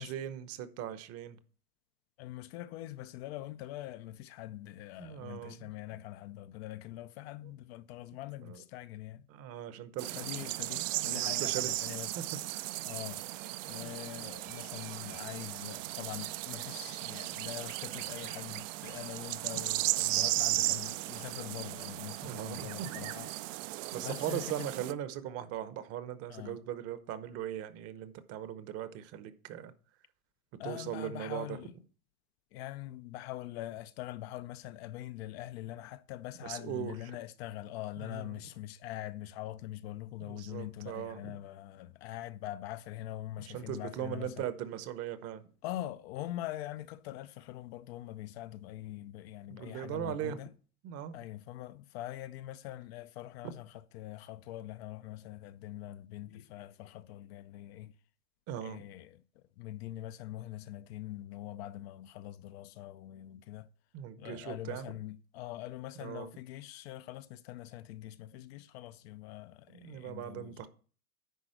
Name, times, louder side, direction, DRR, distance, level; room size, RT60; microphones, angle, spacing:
voice 1, 0.0-1.4 5.0-5.6 5.9-6.0 8.4-8.6 9.3-11.8 12.2-12.3 12.5-12.7 13.7-14.0 22.2-22.9 23.9-29.7 30.6-31.6 36.4-37.0 38.0-38.4 40.2-41.3 43.5-45.4 49.5-50.4 50.8-51.2 58.5-58.8 63.9-64.9 66.0-66.3 69.7-70.7, right 10 dB, 35° right, 0.8 m, -39 dB
voice 2, 2.2-9.3 10.2-12.1 12.9-13.4 13.7-23.6 23.9-24.7 26.3-26.6 30.6-31.7 32.5-44.5 45.6-50.5 51.1-57.9 58.6-63.7 64.2-70.7, left 14 dB, 45° left, 0.5 m, -43 dB
sound 1, 10.0-24.9, right 17 dB, 60° right, 0.5 m, -36 dB
10.0 x 4.0 x 6.5 m
hypercardioid pair, 125°, 43 cm